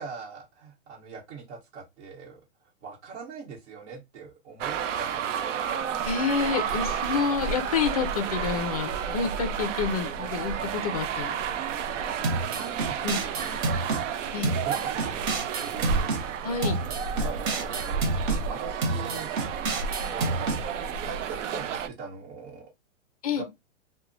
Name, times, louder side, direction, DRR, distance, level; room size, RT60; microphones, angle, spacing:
voice 1, 0.0-2.4 2.8-5.3 11.9-13.6 14.5-16.1 17.2-18.0 18.5-19.3 20.2-20.5 21.0-22.7 23.4-23.5, right 5 dB, 65° right, 1.1 m, -41 dB
sound 1, 4.6-21.9, right 7 dB, 80° right, 0.5 m, -31 dB
voice 2, 5.9-11.4 13.0-13.2 14.3-14.5 16.4-16.8 20.0-20.2 23.2-23.4, left 6 dB, 35° left, 0.4 m, -28 dB
Bowed string instrument, 11.9-17.7, left 1 dB, ahead, 0.7 m, -52 dB
sound 2, 12.2-14.0 14.4-16.2 16.6-18.4 18.8-20.6, right 2 dB, 45° right, 0.7 m, -29 dB
2.9 x 2.1 x 2.5 m
hypercardioid pair, 160°, 36 cm